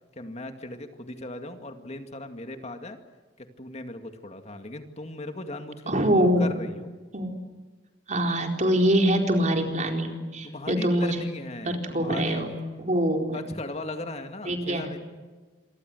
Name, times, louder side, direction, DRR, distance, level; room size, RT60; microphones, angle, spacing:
voice 1, 0.1-3.0 3.4-6.9 10.4-12.6 13.3-15.0, left 2 dB, 40° left, 7 dB, 2.2 m, -38 dB
voice 2, 5.9-6.5 7.1-7.3 8.1-11.2 11.6-12.5 12.8-13.4 14.5-14.8, equal, 45° right, 3 dB, 4.3 m, -24 dB
27.5 x 24.0 x 8.0 m, 1.3 s
head